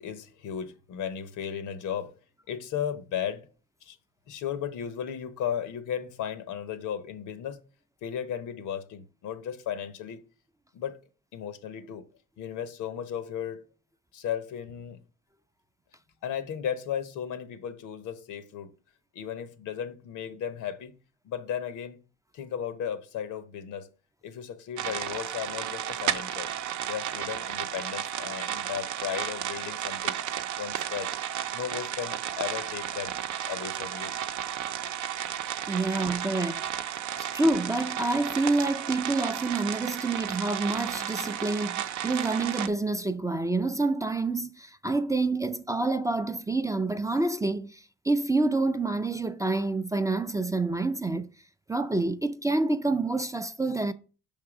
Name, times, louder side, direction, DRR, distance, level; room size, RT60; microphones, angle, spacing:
voice 1, 0.0-2.1 2.5-3.4 3.8-4.0 4.3-7.6 8.0-10.2 10.7-11.0 11.3-12.0 12.4-13.6 14.1-15.0 16.2-18.7 19.1-20.9 21.2-22.0 22.3-23.9 24.2-26.5 26.9-30.2 30.6-31.1 31.5-33.1 33.5-34.1, left 9 dB, 85° left, 0.9 m, -35 dB
sound 1, 24.8-42.7, right 10 dB, 75° right, 0.6 m, -33 dB
voice 2, 35.7-36.7 37.2-51.3 51.7-53.9, right 2 dB, 10° right, 0.3 m, -27 dB
5.8 x 3.6 x 4.8 m
cardioid pair, 90°, 30 cm